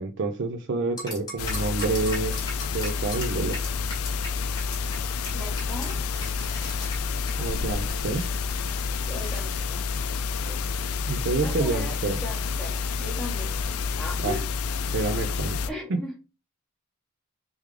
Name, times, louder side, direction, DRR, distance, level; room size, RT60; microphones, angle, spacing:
voice 1, 0.0-2.3 2.7-3.6 7.4-8.2 11.1-12.2 14.2-14.4 14.9-15.6, right 3 dB, 55° right, 7 dB, 0.5 m, -28 dB
sound 1, 1.0-4.3 4.6-4.9 5.2-5.3 5.6-9.6, left 2 dB, 20° left, 1.7 m, -38 dB
sound 2, 1.4-15.7, left 5 dB, 80° left, 0.4 m, -29 dB
voice 2, 5.3-6.0 9.0-9.8 10.5-10.6 11.4-11.9 12.2-14.5 15.7-16.1, left 1 dB, 5° left, -3 dB, 1.4 m, -38 dB
3.5 x 3.3 x 3.2 m, 0.31 s
head